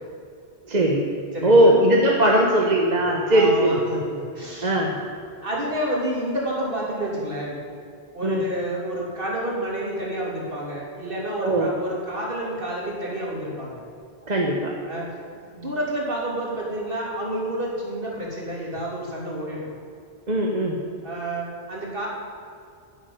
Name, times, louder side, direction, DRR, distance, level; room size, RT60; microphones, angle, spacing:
voice 1, 0.7-1.1 1.4-3.7 4.6-5.0 8.2-8.4 11.4-11.7 14.3-14.7 20.3-20.8, right 1 dB, 40° right, -1 dB, 1.3 m, -19 dB
voice 2, 1.3-1.7 3.1-4.9 5.4-7.5 8.1-13.8 14.8-15.1 15.5-19.7 21.0-22.1, right 1 dB, 60° right, -4 dB, 3.3 m, -29 dB
11.0 x 7.9 x 9.2 m, 2.3 s
omnidirectional pair, 1.1 m